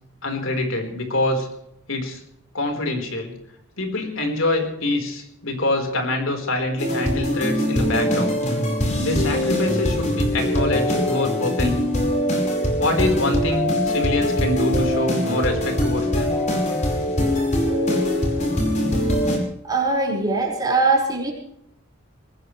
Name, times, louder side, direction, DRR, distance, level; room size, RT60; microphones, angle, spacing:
voice 1, 0.2-1.5 1.9-2.2 2.5-3.3 3.8-8.4 9.0-11.9 12.8-16.4, left 2 dB, 80° left, 3 dB, 4.6 m, -25 dB
sound 1, 6.8-19.4, left 1 dB, 35° left, 5.1 m, -22 dB
voice 2, 19.6-21.3, right 3 dB, 20° right, -2 dB, 5.5 m, -21 dB
22.5 x 19.0 x 3.3 m, 0.75 s
head